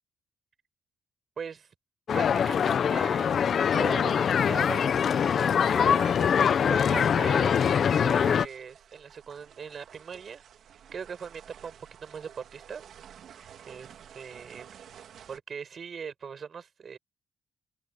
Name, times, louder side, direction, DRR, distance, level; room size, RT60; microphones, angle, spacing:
voice 1, 1.4-1.7 2.1-3.4 3.7-5.0 5.7-7.6 8.0-10.4 10.9-12.8 13.3-14.7 15.3-17.0, right 6 dB, 55° right, 6.2 m, -40 dB
sound 1, 2.1-8.5, left 7 dB, 60° left, 1.0 m, -23 dB
sound 2, 8.0-15.4, right 9 dB, 70° right, 3.1 m, -51 dB
open air
cardioid pair, 75°, 0 cm